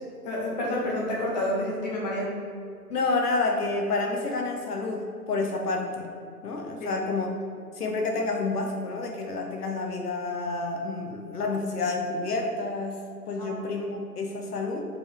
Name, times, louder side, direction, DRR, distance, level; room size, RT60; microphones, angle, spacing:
voice 1, 0.2-2.3 6.8-6.9 13.4-13.7, left 1 dB, 25° left, -5 dB, 1.4 m, -29 dB
voice 2, 2.9-6.1 6.4-7.3 7.7-14.9, left 3 dB, 70° left, 2 dB, 1.0 m, -29 dB
5.4 x 4.6 x 4.6 m, 2.3 s
hypercardioid pair, 165°, 48 cm